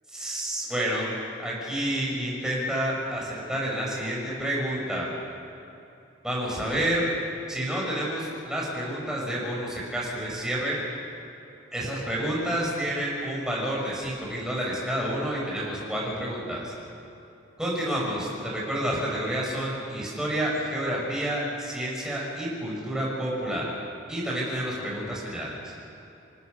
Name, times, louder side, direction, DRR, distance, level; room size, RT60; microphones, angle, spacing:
voice 1, 0.1-1.1 1.4-5.1 6.2-7.1 7.5-10.8 11.7-16.7 17.6-23.7 24.1-25.7, right 1 dB, 5° right, -5 dB, 6.6 m, -29 dB
29.0 x 18.5 x 6.8 m, 2.7 s
head